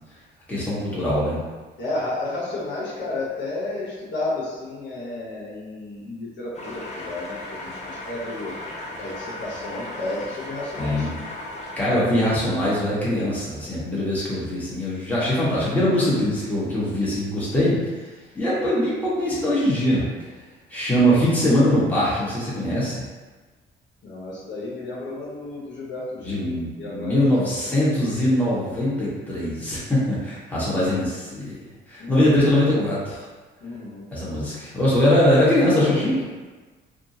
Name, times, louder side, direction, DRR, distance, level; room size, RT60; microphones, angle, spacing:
voice 1, 0.5-1.4 10.8-11.1 11.8-17.8 18.3-20.0 20.7-23.1 26.2-31.5 31.9-33.2 34.1-36.2, left 1 dB, 10° left, -9 dB, 1.4 m, -22 dB
voice 2, 1.8-8.5 9.0-11.1 24.0-27.2 27.5-27.9 28.2-28.3 32.0-32.3 33.6-34.0, left 2 dB, 65° left, -7 dB, 1.0 m, -32 dB
sound 1, 6.5-11.8, left 2 dB, 35° left, 0.7 m, -36 dB
3.5 x 2.4 x 2.7 m, 1.3 s
cardioid pair, 90°, 20 cm